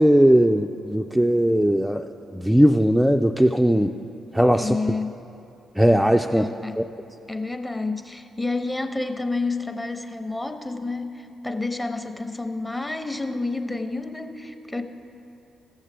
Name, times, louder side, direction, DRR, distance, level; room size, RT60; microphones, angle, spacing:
voice 1, 0.0-3.9 4.3-4.8 5.8-6.5 6.8-6.9, equal, 5° right, 4 dB, 0.3 m, -19 dB
voice 2, 4.5-5.1 6.3-6.8 7.3-14.8, left 3 dB, 15° left, 7 dB, 0.7 m, -29 dB
14.5 x 7.2 x 3.4 m, 2.8 s
hypercardioid pair, 40°, 0 cm